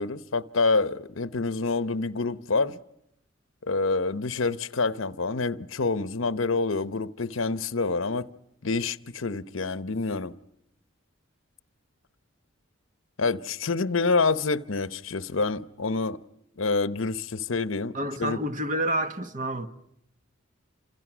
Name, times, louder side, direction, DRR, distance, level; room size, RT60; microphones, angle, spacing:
voice 1, 0.0-2.8 3.6-8.3 8.6-10.3 13.2-16.2 16.6-18.4, left 3 dB, 75° left, 0.9 m, -27 dB
voice 2, 17.9-19.7, right 1 dB, 40° right, 1.6 m, -29 dB
28.5 x 27.5 x 6.2 m
head